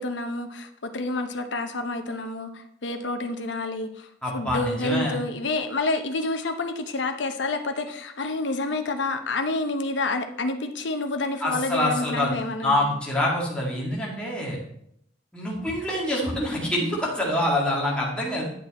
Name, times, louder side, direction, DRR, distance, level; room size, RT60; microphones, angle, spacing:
voice 1, 0.0-12.8, left 2 dB, 75° left, 7 dB, 0.8 m, -29 dB
voice 2, 4.2-5.1 11.4-12.3 12.6-14.6 15.3-18.5, left 1 dB, 5° left, -5 dB, 2.2 m, -26 dB
9.3 x 6.1 x 4.2 m, 0.73 s
head